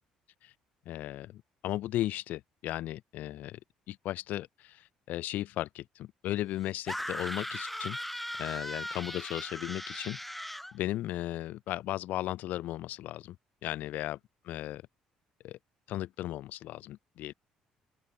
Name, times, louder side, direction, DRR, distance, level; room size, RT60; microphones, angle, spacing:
voice 1, 0.8-3.6 3.9-8.0 8.4-10.2 10.7-13.4 13.6-14.2 14.5-14.8 15.4-15.6 15.9-17.3, left 14 dB, 55° left, 3.0 m, -36 dB
sound 1, 6.9-10.7, equal, 5° left, 6.2 m, -38 dB
open air
figure-of-eight pair, 50°, 3 cm